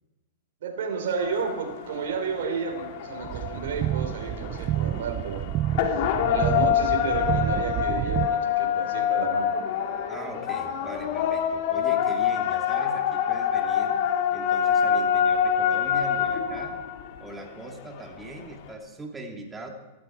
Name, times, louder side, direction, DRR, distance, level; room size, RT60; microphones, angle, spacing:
voice 1, 0.6-5.4 6.3-9.5, right 6 dB, 70° right, 1 dB, 4.3 m, -31 dB
sound 1, 1.2-18.7, left 8 dB, 55° left, 2.7 m, -26 dB
sound 2, 3.2-8.3, right 13 dB, 35° right, 0.5 m, -29 dB
voice 2, 10.1-14.0 14.3-16.8 17.2-19.7, right 1 dB, 15° right, 2 dB, 2.8 m, -40 dB
18.0 x 14.5 x 4.6 m, 1.1 s
hypercardioid pair, 125°, 0 cm